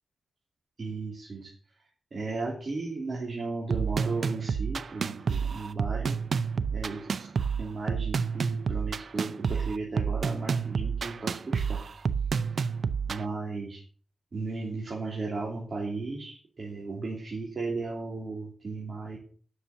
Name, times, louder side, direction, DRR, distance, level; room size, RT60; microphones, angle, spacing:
voice 1, 0.8-1.5 2.1-6.2 6.7-7.3 7.6-11.8 13.1-13.8 14.3-19.2, right 3 dB, 45° right, -4 dB, 3.2 m, -35 dB
sound 1, 3.7-13.2, right 6 dB, 65° right, 0.5 m, -29 dB
9.8 x 6.9 x 7.2 m, 0.44 s
wide cardioid pair, 125°, 0 cm